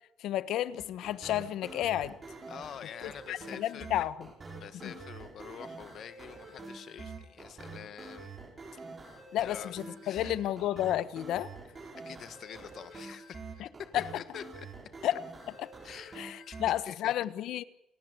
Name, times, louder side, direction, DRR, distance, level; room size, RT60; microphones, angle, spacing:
voice 1, 0.2-2.2 3.3-4.3 4.8-4.9 9.3-11.5 13.9-14.0 15.0-15.2 15.6-15.7 16.2-17.6, left 12 dB, 70° left, 1.2 m, -31 dB
sound 1, 0.8-16.7, right 3 dB, 25° right, 5.8 m, -46 dB
voice 2, 2.5-4.0 4.5-8.3 8.7-9.8 10.0-10.4 11.9-14.7 15.8-17.1, left 9 dB, 50° left, 1.5 m, -46 dB
29.5 x 14.5 x 9.5 m
cardioid pair, 160°, 0 cm